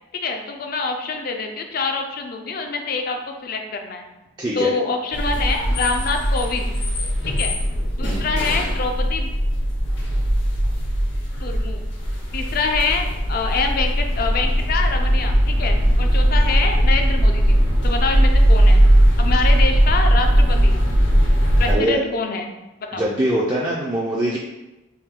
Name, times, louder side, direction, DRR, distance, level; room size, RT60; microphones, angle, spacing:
voice 1, 0.1-4.1 4.6-6.7 7.4-7.5 8.0-9.3 11.4-11.9 12.3-17.6 17.8-18.8 19.2-20.8 21.6-22.5 22.8-23.0, left 4 dB, 45° left, 4 dB, 0.4 m, -25 dB
voice 2, 4.4-4.7 8.0-8.3 21.7-22.0 22.9-24.4, right 1 dB, 20° right, -5 dB, 0.3 m, -22 dB
sound 1, 5.1-21.7, equal, 65° left, 0.8 m, -18 dB
3.4 x 2.6 x 3.6 m, 1.0 s
head